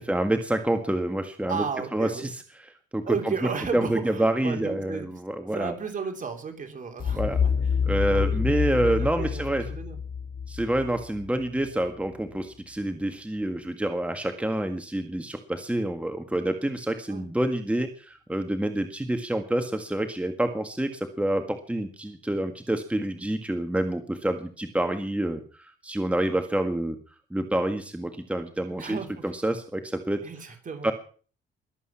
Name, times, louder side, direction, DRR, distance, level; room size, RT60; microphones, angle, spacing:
voice 1, 0.0-1.6 1.9-3.3 3.7-5.7 7.1-7.4 7.9-9.7 10.5-26.9 27.3-30.2 30.8-30.9, right 1 dB, 5° right, 6 dB, 1.7 m, -28 dB
voice 2, 1.5-2.3 3.0-5.2 5.5-7.7 8.1-9.4 9.7-10.0 17.1-17.3 28.7-29.3 30.2-30.9, right 5 dB, 40° right, 4 dB, 3.3 m, -34 dB
sound 1, 7.0-11.9, left 6 dB, 45° left, 1.4 m, -28 dB
22.0 x 8.3 x 5.8 m, 0.41 s
cardioid pair, 90°, 20 cm